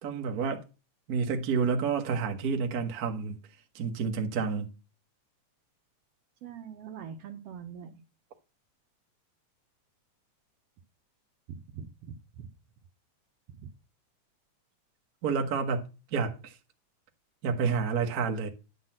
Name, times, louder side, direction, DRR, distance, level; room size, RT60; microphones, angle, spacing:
voice 1, 0.0-0.6 1.1-3.4 3.7-4.7 15.2-15.8 16.1-16.5 17.4-18.5, right 5 dB, 50° right, 1.1 m, -29 dB
voice 2, 6.4-8.0 11.5-12.5 13.5-13.7, right 7 dB, 70° right, 1.6 m, -43 dB
10.5 x 3.9 x 7.5 m
omnidirectional pair, 3.3 m